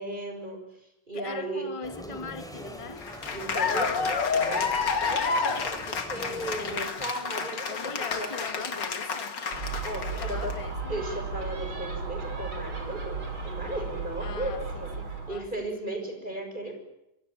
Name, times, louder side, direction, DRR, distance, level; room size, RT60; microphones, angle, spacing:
voice 1, 0.0-1.7 3.3-8.6 9.8-10.5 10.9-16.7, right 1 dB, 20° right, 4 dB, 6.7 m, -36 dB
voice 2, 1.1-3.0 7.7-9.3 10.1-11.0 14.2-14.6 15.0-15.7, left 5 dB, 15° left, 10 dB, 1.5 m, -40 dB
Village center activity, 1.8-6.9, left 1 dB, ahead, 4.8 m, -43 dB
Cheering / Applause, 3.0-10.5, left 5 dB, 60° left, 2.8 m, -30 dB
Gull seagull, 9.5-15.4, right 4 dB, 80° right, 5.8 m, -35 dB
26.0 x 24.0 x 9.0 m, 0.85 s
omnidirectional pair, 2.2 m